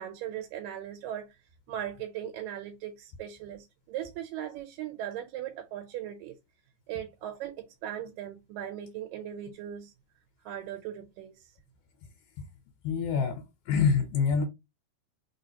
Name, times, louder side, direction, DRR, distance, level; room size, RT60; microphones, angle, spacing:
voice 1, 0.0-1.4 1.7-6.4 6.9-9.9 10.4-11.5, right 11 dB, 85° right, 2.4 m, -38 dB
voice 2, 12.8-14.4, left 6 dB, 75° left, 2.5 m, -26 dB
4.6 x 3.7 x 2.8 m
omnidirectional pair, 3.8 m